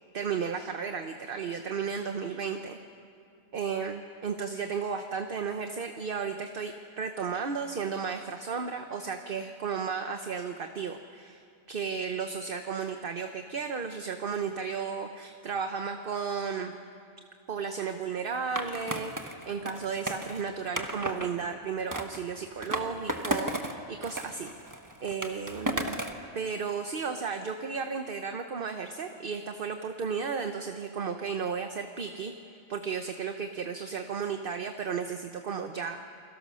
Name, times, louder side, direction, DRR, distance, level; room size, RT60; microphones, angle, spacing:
voice 1, 0.1-2.8 3.5-11.4 11.7-16.7 17.5-24.5 25.0-26.0 26.3-32.3 32.7-36.0, right 6 dB, 50° right, 6 dB, 1.0 m, -34 dB
Skateboard, 18.6-21.3 21.9-23.7 24.0-26.2, right 1 dB, 15° right, 1.3 m, -34 dB
29.0 x 22.0 x 6.3 m, 2.5 s
omnidirectional pair, 1.3 m